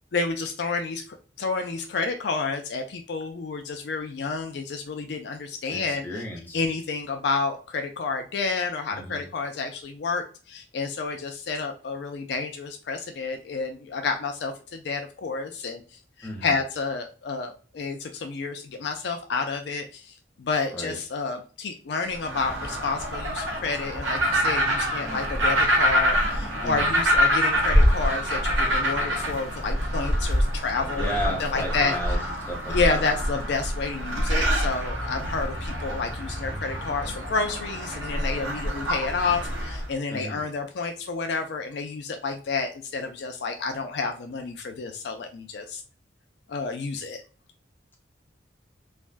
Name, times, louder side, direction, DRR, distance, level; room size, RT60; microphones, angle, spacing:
voice 1, 0.1-1.0 1.4-6.0 6.5-15.8 16.2-20.0 20.4-31.1 31.4-32.0 32.7-45.8 46.5-47.2, left 4 dB, 60° left, 5 dB, 0.4 m, -30 dB
voice 2, 5.7-6.6 8.9-9.3 16.2-16.6 20.7-21.0 26.6-27.0 31.0-32.2 32.5-33.1 40.1-40.4, equal, 10° left, -2 dB, 0.7 m, -34 dB
sound 1, 22.1-39.9, equal, 85° right, 1.0 m, -25 dB
3.3 x 2.2 x 2.4 m, 0.38 s
head